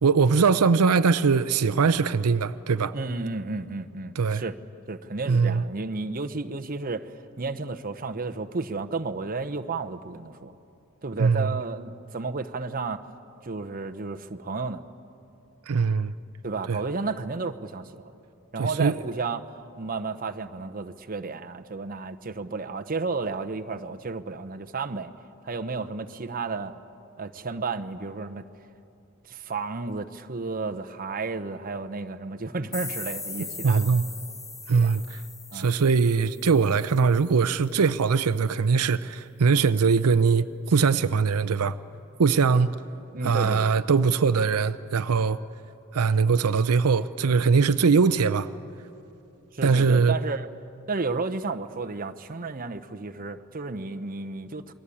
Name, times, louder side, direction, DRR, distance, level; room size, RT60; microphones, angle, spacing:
voice 1, 0.0-3.0 4.2-4.4 5.3-5.6 11.2-11.5 15.7-16.1 16.7-16.8 18.6-18.9 33.6-34.0 34.7-35.2 35.5-41.8 42.2-42.8 43.2-45.4 45.9-48.5 49.6-50.1, right 5 dB, 80° right, 0.6 m, -21 dB
voice 2, 2.9-4.6 4.9-10.5 11.0-13.0 13.4-14.8 16.4-18.1 18.5-25.1 25.4-26.7 27.2-28.5 29.3-34.0 34.7-34.9 35.5-35.7 43.1-43.7 49.5-50.5 50.9-54.7, right 3 dB, 40° right, 0.9 m, -32 dB
ss-purity crash, 32.7-37.4, left 3 dB, 15° left, 1.3 m, -39 dB
28.5 x 21.0 x 8.6 m
head